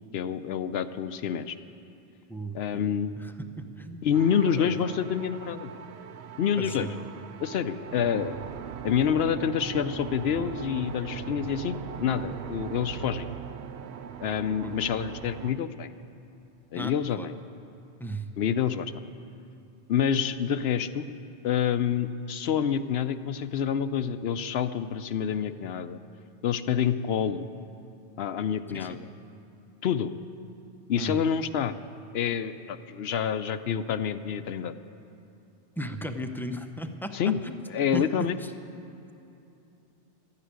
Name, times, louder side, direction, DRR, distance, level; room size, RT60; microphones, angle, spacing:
voice 1, 0.1-1.6 2.5-3.1 4.0-5.7 6.4-6.9 7.4-8.3 8.8-13.3 14.2-15.9 16.7-17.3 18.4-18.9 19.9-21.1 21.4-26.0 26.4-27.5 28.2-29.1 29.8-30.1 30.9-31.7 32.1-34.7 37.1-37.4 37.7-38.4, left 8 dB, 70° left, 11 dB, 0.8 m, -27 dB
voice 2, 2.3-2.8 3.2-4.2 4.6-4.7 6.6-7.0 14.6-14.8 16.7-17.3 18.0-18.3 28.7-29.0 31.0-31.2 35.8-37.6 37.9-38.0 38.4-38.5, right 1 dB, 5° left, 6 dB, 0.5 m, -36 dB
sound 1, 4.1-15.5, right 8 dB, 75° right, 0.8 m, -40 dB
13.0 x 9.8 x 9.5 m, 2.8 s
omnidirectional pair, 1.1 m